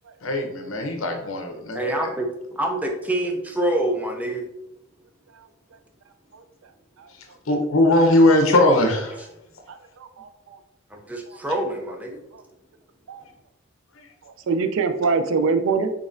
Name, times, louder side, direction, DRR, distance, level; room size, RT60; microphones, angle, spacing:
voice 1, 0.2-1.9 7.5-9.2, left 1 dB, 75° left, 3 dB, 0.8 m, -19 dB
voice 2, 1.7-4.4 8.7-8.9 10.9-12.2, right 1 dB, 5° right, 1 dB, 0.5 m, -26 dB
voice 3, 9.7-10.6 11.3-11.4 12.3-12.4 13.1-13.2 14.2-15.9, right 4 dB, 65° right, 9 dB, 0.4 m, -25 dB
3.9 x 3.5 x 2.5 m, 0.90 s
head